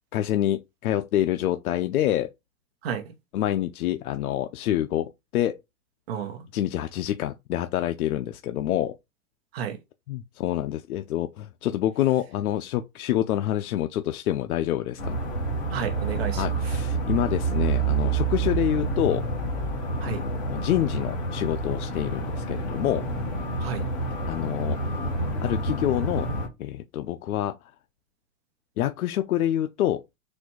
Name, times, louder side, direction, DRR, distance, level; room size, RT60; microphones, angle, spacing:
voice 1, 0.1-2.3 3.3-5.6 6.5-9.0 10.1-15.2 16.3-19.2 20.0-23.1 24.3-24.9 25.4-26.3 26.6-27.6 28.8-30.0, left 12 dB, 85° left, 0.6 m, -27 dB
voice 2, 6.1-6.4 9.5-9.8 15.7-16.8 20.0-20.2 23.6-23.9, right 8 dB, 45° right, 1.1 m, -32 dB
sound 1, 15.0-26.5, right 3 dB, 15° left, 1.3 m, -28 dB
4.3 x 2.5 x 4.5 m
supercardioid pair, 170°, 42 cm